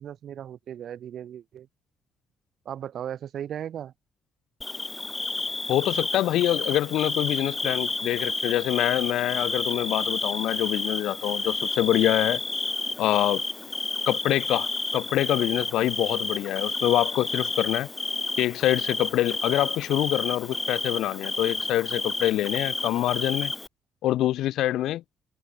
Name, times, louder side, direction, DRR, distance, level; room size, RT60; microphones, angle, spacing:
voice 1, 0.0-1.7 2.6-3.9, right 9 dB, 65° right, 2.7 m, -36 dB
Bird / Cricket, 4.6-23.7, left 2 dB, 20° left, 0.4 m, -31 dB
voice 2, 5.7-12.4 13.0-13.4 14.1-17.9 18.4-23.5 24.0-25.0, left 13 dB, 85° left, 0.6 m, -25 dB
cardioid pair, 90°, 0 cm